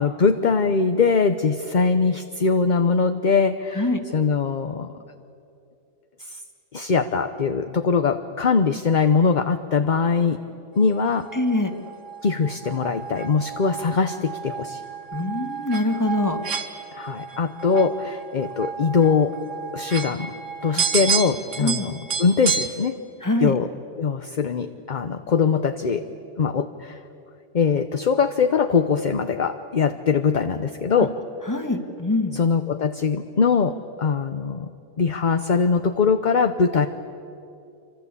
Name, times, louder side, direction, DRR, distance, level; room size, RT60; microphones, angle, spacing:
voice 1, 0.0-4.9 6.3-6.4 6.7-10.4 10.8-11.3 12.2-14.8 16.9-19.4 19.7-20.3 20.6-23.0 23.4-23.7 24.0-26.1 26.4-27.0 27.5-31.2 32.3-34.7 35.0-36.9, left 5 dB, 40° left, 9 dB, 0.9 m, -22 dB
sound 1, 10.9-22.7, right 6 dB, 85° right, 2.1 m, -31 dB
voice 2, 11.3-11.7 15.1-16.4 20.7-20.9 21.6-21.9 23.2-23.5 31.5-32.4, left 1 dB, 15° left, 6 dB, 1.9 m, -24 dB
28.0 x 25.0 x 8.4 m, 2.6 s
omnidirectional pair, 1.3 m